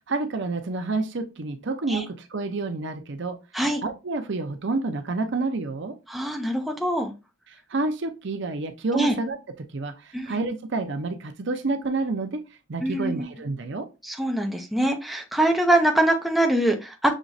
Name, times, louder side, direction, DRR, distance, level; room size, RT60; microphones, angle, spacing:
voice 1, 0.1-3.4 3.8-5.9 7.7-12.4 12.7-13.9, right 3 dB, 60° right, 0.7 m, -29 dB
voice 2, 6.1-7.1 8.9-9.1 10.1-10.4 12.8-13.3 14.0-17.1, right 1 dB, ahead, 0.7 m, -23 dB
6.3 x 3.0 x 2.6 m
head